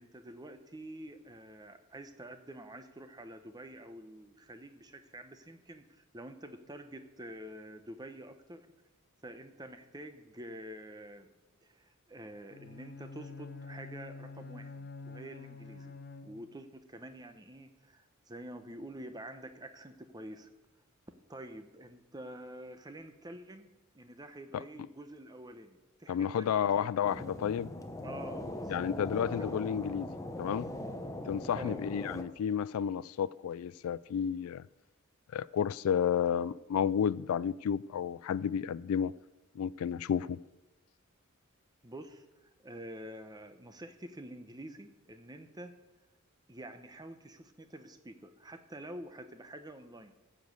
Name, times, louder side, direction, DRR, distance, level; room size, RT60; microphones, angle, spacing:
voice 1, 0.0-8.7 9.2-11.3 11.6-16.0 16.2-20.5 21.3-23.7 23.9-27.0 28.0-28.9 31.5-31.8 41.8-45.7 46.5-50.1, right 1 dB, 20° right, 0.9 m, -48 dB
Bowed string instrument, 12.5-16.7, left 3 dB, 45° left, 0.8 m, -47 dB
voice 2, 26.1-27.7 28.7-30.1 30.4-30.7 31.3-34.6 35.3-39.1 39.6-40.4, left 8 dB, 75° left, 0.3 m, -31 dB
sound 1, 27.0-32.2, left 1 dB, 15° left, 0.8 m, -40 dB
14.5 x 5.1 x 7.9 m
head